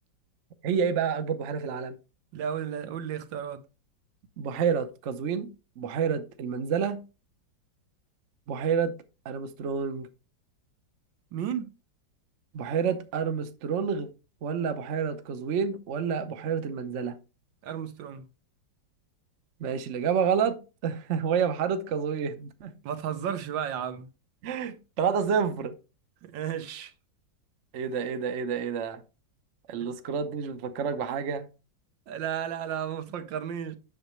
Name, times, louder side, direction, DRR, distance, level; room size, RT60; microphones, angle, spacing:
voice 1, 0.6-1.9 4.4-7.0 8.5-9.0 9.2-10.1 12.5-14.1 14.4-17.2 19.6-22.7 24.4-25.7 27.7-29.0 29.7-31.5, right 6 dB, 55° right, 0.9 m, -29 dB
voice 2, 2.3-3.6 11.3-11.7 17.6-18.2 22.8-24.1 26.2-26.9 32.1-33.8, right 9 dB, 80° right, 1.5 m, -33 dB
8.0 x 6.5 x 3.1 m
omnidirectional pair, 2.0 m